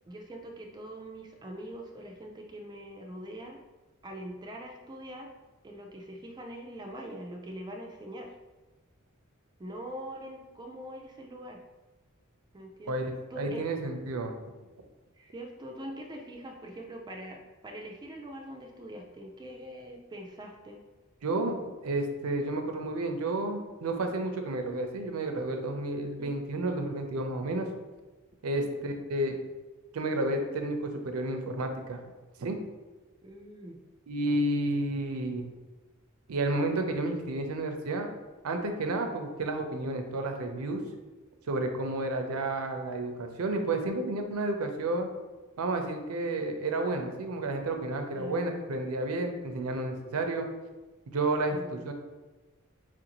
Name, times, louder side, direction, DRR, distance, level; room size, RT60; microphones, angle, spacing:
voice 1, 0.1-3.6 4.0-5.3 5.6-8.3 9.6-11.6 12.5-13.6 15.2-20.8 26.0-26.3 28.5-28.8 33.2-33.8 48.1-48.4 51.5-51.8, right 1 dB, 20° right, 1 dB, 0.3 m, -43 dB
voice 2, 13.4-14.3 21.2-27.7 28.4-29.4 29.9-32.0 32.4-32.6 34.1-35.5 36.3-38.1 38.4-40.8 41.5-45.1 45.6-50.5 51.1-51.9, right 2 dB, 90° right, 5 dB, 0.5 m, -31 dB
4.6 x 2.5 x 2.9 m, 1.2 s
head